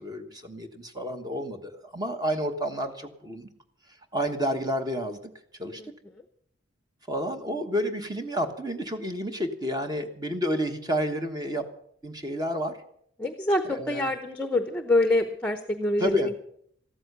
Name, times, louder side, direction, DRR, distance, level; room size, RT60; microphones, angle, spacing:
voice 1, 0.0-3.5 4.1-5.2 5.6-5.8 7.1-11.6 12.0-12.8 13.7-14.1 16.0-16.3, equal, 20° right, 6 dB, 1.2 m, -30 dB
voice 2, 13.2-16.3, left 1 dB, 5° left, 8 dB, 0.8 m, -26 dB
14.0 x 13.0 x 6.7 m, 0.68 s
head